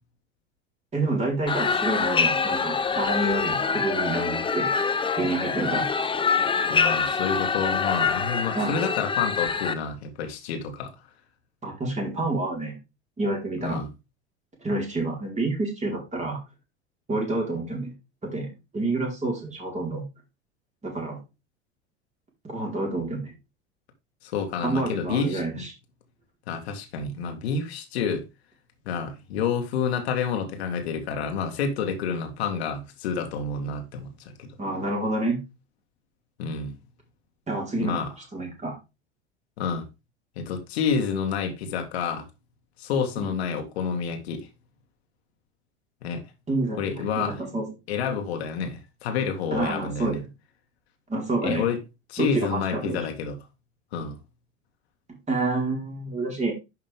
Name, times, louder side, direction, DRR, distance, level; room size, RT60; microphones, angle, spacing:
voice 1, 0.9-4.7 5.2-5.8 8.5-8.8 11.6-12.7 13.2-13.8 14.6-16.4 17.1-17.9 18.2-20.0 20.8-21.2 22.4-23.3 24.6-25.7 34.6-35.4 37.5-38.0 38.3-38.8 43.2-43.3 46.5-47.7 49.5-50.3 51.1-51.6 52.2-53.0 55.3-56.5, right 2 dB, 20° right, 4.6 m, -28 dB
sound 1, 1.5-9.7, left 5 dB, 15° left, 0.9 m, -25 dB
voice 2, 6.7-10.9 13.6-13.9 24.2-25.7 26.5-28.3 28.9-34.1 34.4-34.5 36.4-36.8 37.8-38.1 39.6-39.8 40.4-42.3 42.8-44.5 46.0-46.2 46.8-47.4 47.9-50.2 51.4-51.8 52.1-53.4 53.9-54.2, left 6 dB, 65° left, 2.0 m, -29 dB
11.0 x 5.8 x 3.6 m
figure-of-eight pair, 75°, 35 cm